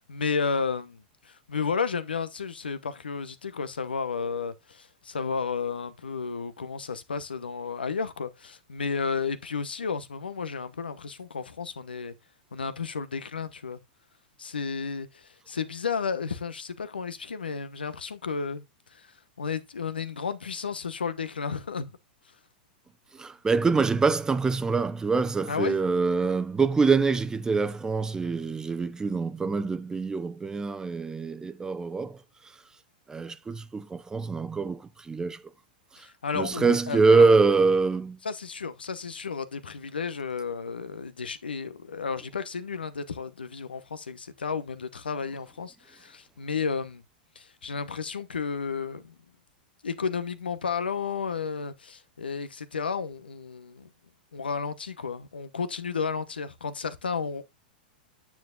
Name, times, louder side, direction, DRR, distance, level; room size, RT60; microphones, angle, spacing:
voice 1, 0.0-12.1 12.5-13.8 14.4-18.6 18.9-19.1 19.4-21.9 25.5-25.8 36.0-37.4 38.2-47.0 47.3-49.1 49.8-53.9 54.3-57.4, left 5 dB, 90° left, 1.0 m, -32 dB
voice 2, 23.2-32.2 33.1-35.4 36.0-36.1 36.3-38.2, right 4 dB, 15° right, 0.8 m, -24 dB
9.4 x 7.2 x 2.5 m
hypercardioid pair, 110°, 5 cm